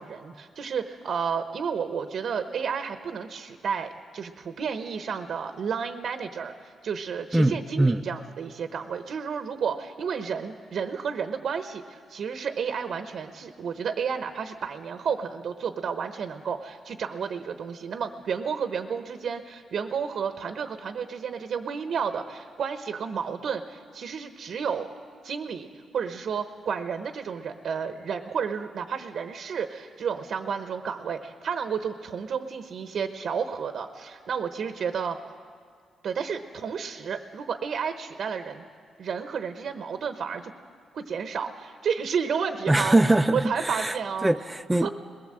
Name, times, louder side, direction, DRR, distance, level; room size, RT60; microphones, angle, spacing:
voice 1, 0.0-24.9 25.2-35.2 36.0-38.6 39.0-40.5 40.9-43.0 43.3-44.3 44.8-44.9, right 6 dB, 65° right, 1.0 m, -31 dB
voice 2, 7.3-8.0 42.7-43.9 44.2-44.9, right 2 dB, 10° right, 0.6 m, -22 dB
21.0 x 18.0 x 7.7 m
cardioid pair, 105°, 0 cm